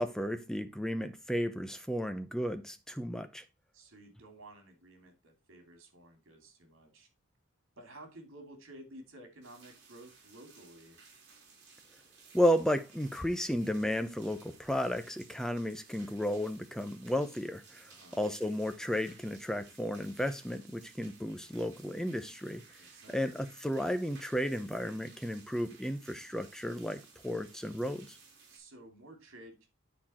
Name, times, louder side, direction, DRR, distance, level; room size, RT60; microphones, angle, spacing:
voice 1, 0.0-3.4 12.3-22.6 23.1-28.2, equal, 5° left, 0.7 m, -33 dB
voice 2, 3.7-7.1 7.8-11.0 17.9-18.2 22.8-23.2 28.5-29.7, right 1 dB, 70° right, 2.8 m, -53 dB
sound 1, 9.4-28.6, right 5 dB, 55° right, 3.5 m, -58 dB
9.9 x 4.5 x 4.3 m
head